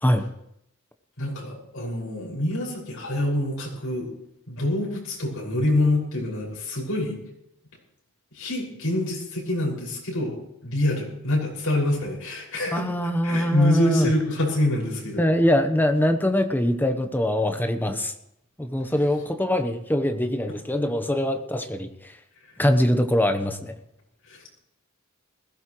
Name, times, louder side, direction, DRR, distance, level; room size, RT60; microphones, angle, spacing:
voice 1, 1.2-4.1 4.5-7.2 8.3-12.9 13.2-15.2 24.3-24.4, left 1 dB, 80° left, -3 dB, 6.0 m, -26 dB
voice 2, 12.7-14.1 15.2-18.1 18.6-22.2 22.6-23.8, left 1 dB, 10° left, 7 dB, 1.0 m, -23 dB
20.5 x 16.5 x 3.2 m, 0.80 s
head